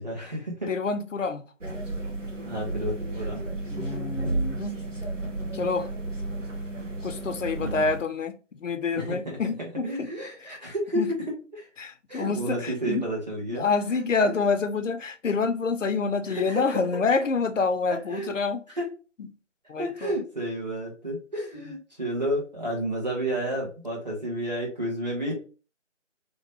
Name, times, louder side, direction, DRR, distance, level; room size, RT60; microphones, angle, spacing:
voice 1, 0.0-0.7 2.4-3.4 7.5-7.9 8.9-9.4 9.8-11.7 12.1-13.9 16.3-16.7 17.9-18.3 18.7-18.9 19.8-25.3, right 1 dB, 35° right, 1.0 m, -31 dB
voice 2, 0.7-1.4 3.7-4.7 5.5-5.9 7.0-10.1 10.4-10.5 10.9-11.1 11.8-13.0 13.5-18.6 19.7-20.1 21.6-21.7, left 4 dB, 75° left, 0.6 m, -27 dB
sound 1, 1.6-8.0, right 2 dB, 75° right, 1.3 m, -33 dB
3.0 x 2.1 x 2.9 m
figure-of-eight pair, 170°, 38 cm